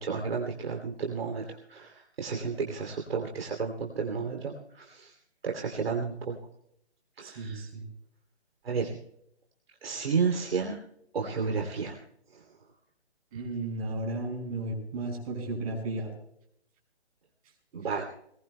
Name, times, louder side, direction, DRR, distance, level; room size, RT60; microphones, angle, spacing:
voice 1, 0.0-5.1 5.4-6.4 7.2-7.6 8.6-9.0 9.8-10.7 11.1-12.0 12.3-12.4 17.7-18.0, right 5 dB, 60° right, 1 dB, 3.0 m, -32 dB
voice 2, 7.2-7.9 13.3-16.1, right 2 dB, 35° right, 1 dB, 6.3 m, -34 dB
21.5 x 21.0 x 2.2 m, 0.73 s
hypercardioid pair, 155°, 33 cm